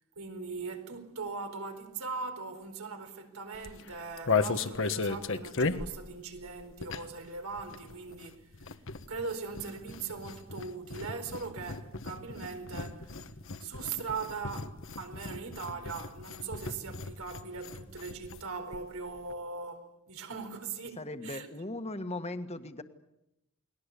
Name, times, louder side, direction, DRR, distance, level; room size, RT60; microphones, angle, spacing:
voice 1, 0.2-8.5 9.1-13.1 13.6-21.5, right 4 dB, 85° right, 4.5 m, -40 dB
sound 1, 3.5-7.3 7.5-18.4 18.7-18.8 19.0-19.3, left 4 dB, 60° left, 1.3 m, -36 dB
voice 2, 21.0-22.8, left 2 dB, 30° left, 1.6 m, -38 dB
29.5 x 20.5 x 8.4 m
head